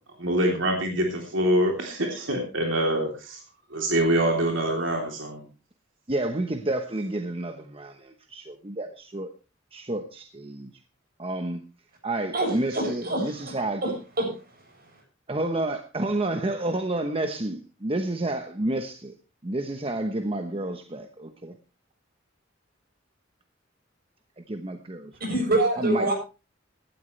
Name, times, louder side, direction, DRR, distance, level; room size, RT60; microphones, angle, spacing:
voice 1, 0.2-3.4 3.7-5.4, right 1 dB, 75° right, 1 dB, 3.3 m, -25 dB
voice 2, 6.1-9.3 9.7-10.7 11.2-11.6 12.0-13.8 15.3-19.1 19.4-21.6 24.5-25.1 25.8-26.1, right 2 dB, 30° right, 6 dB, 1.0 m, -30 dB
voice 3, 12.3-13.5 13.8-14.3 25.3-26.1, right 2 dB, 50° right, 2 dB, 7.4 m, -26 dB
16.5 x 12.5 x 3.3 m, 0.32 s
head